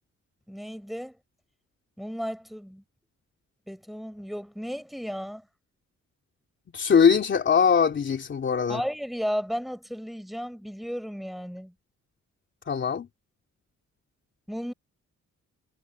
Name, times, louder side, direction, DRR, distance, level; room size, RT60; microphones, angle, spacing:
voice 1, 0.5-1.2 2.0-2.8 3.7-5.4 8.7-11.7 14.5-14.7, equal, ahead, 5.7 m, -34 dB
voice 2, 6.7-8.8 12.7-13.1, left 6 dB, 40° left, 3.3 m, -21 dB
wide cardioid pair, 170°, 29 cm